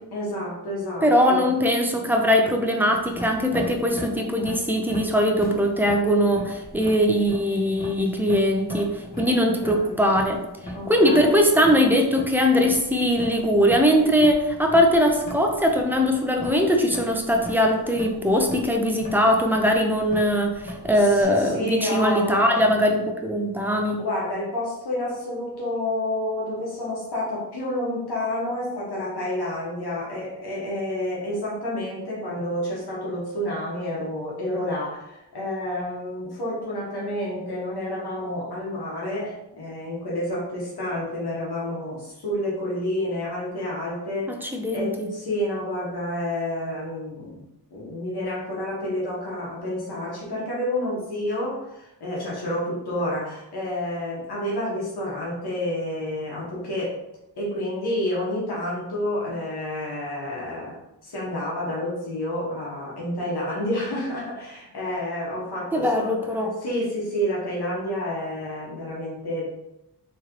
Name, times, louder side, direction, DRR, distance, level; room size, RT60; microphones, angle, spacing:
voice 1, 0.1-1.5 9.2-9.3 9.6-10.0 10.7-11.4 21.0-22.6 24.0-44.3 44.7-56.9 57.4-60.8 61.0-66.1 66.6-69.5, left 1 dB, 75° left, -5 dB, 1.3 m, -29 dB
voice 2, 1.0-10.4 10.9-24.0 44.3-45.1 65.7-66.6, equal, 5° right, 2 dB, 0.5 m, -21 dB
sound 1, 2.9-21.2, equal, 20° left, 1.0 m, -39 dB
3.6 x 3.2 x 3.0 m, 0.90 s
wide cardioid pair, 120°, 39 cm